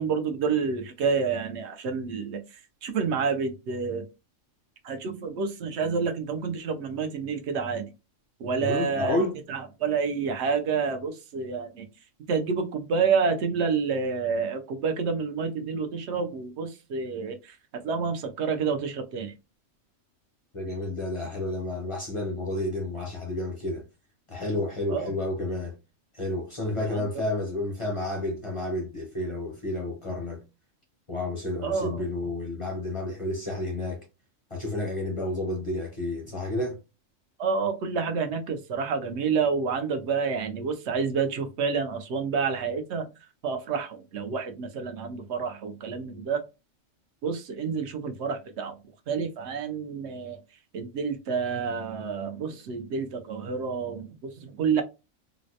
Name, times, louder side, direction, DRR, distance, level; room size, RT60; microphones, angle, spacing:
voice 1, 0.0-4.0 4.8-7.9 8.4-9.2 9.5-11.9 12.3-17.6 17.8-19.3 24.9-25.1 26.9-27.0 31.6-32.0 37.4-43.1 43.4-46.4 47.2-48.8 49.1-50.4 50.7-54.8, right 5 dB, 65° right, 0.8 m, -29 dB
voice 2, 8.6-9.4 20.5-23.8 24.3-25.8 26.1-30.4 31.1-34.0 34.5-36.8, left 1 dB, 35° left, 0.6 m, -30 dB
3.9 x 2.1 x 2.7 m
omnidirectional pair, 1.4 m